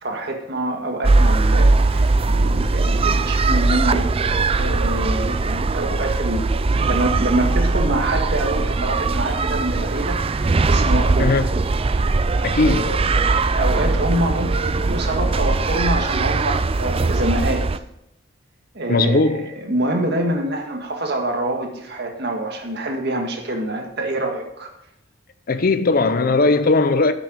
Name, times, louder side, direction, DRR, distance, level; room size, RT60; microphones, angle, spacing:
voice 1, 0.0-4.1 4.6-6.4 6.9-11.3 12.6-17.6 18.7-24.7, right 1 dB, 60° right, 1.8 m, -25 dB
sound 1, 1.0-17.8, right 3 dB, 30° right, 0.4 m, -20 dB
voice 2, 11.2-11.5 12.4-12.9 18.9-19.5 25.5-27.1, left 3 dB, 50° left, 0.6 m, -18 dB
11.0 x 7.0 x 5.1 m
head